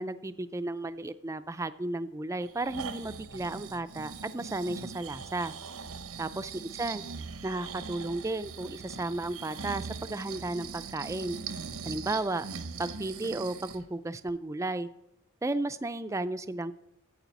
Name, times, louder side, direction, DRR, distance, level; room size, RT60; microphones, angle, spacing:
voice 1, 0.0-5.5 6.2-7.0 7.4-11.4 11.8-12.5 12.8-14.9 15.4-16.8, right 2 dB, 15° right, 12 dB, 0.3 m, -34 dB
Breathing, 2.4-13.8 14.3-14.4, right 5 dB, 85° right, 0.8 m, -41 dB
9.1 x 8.2 x 7.0 m, 0.85 s
head